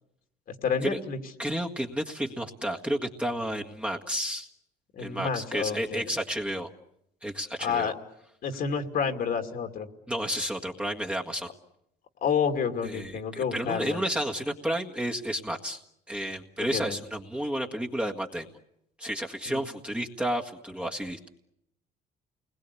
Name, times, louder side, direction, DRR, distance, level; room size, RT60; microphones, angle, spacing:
voice 1, 0.5-1.2 4.9-6.0 7.6-7.9 8.4-9.9 12.2-14.0 16.7-17.0 19.5-19.6, left 6 dB, 60° left, 6 dB, 2.6 m, -29 dB
voice 2, 1.4-4.5 5.0-6.7 7.2-7.9 10.1-11.5 12.8-15.8 16.1-18.5 19.0-21.3, equal, 5° right, 1 dB, 1.8 m, -31 dB
29.0 x 21.0 x 8.4 m, 0.81 s
cardioid pair, 110°, 17 cm